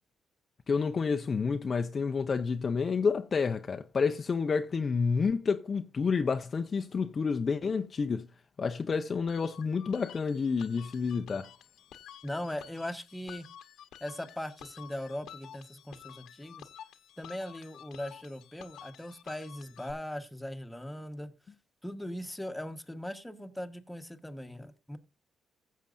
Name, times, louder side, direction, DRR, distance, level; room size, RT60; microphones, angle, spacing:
voice 1, 0.7-8.3 8.6-11.5, left 5 dB, 40° left, 0.6 m, -29 dB
sound 1, 9.3-19.9, left 10 dB, 80° left, 1.0 m, -51 dB
voice 2, 12.2-13.5 14.0-16.7 17.2-21.3 21.8-25.0, left 1 dB, 5° left, 1.3 m, -39 dB
16.0 x 7.4 x 2.6 m
cardioid pair, 90°, 0 cm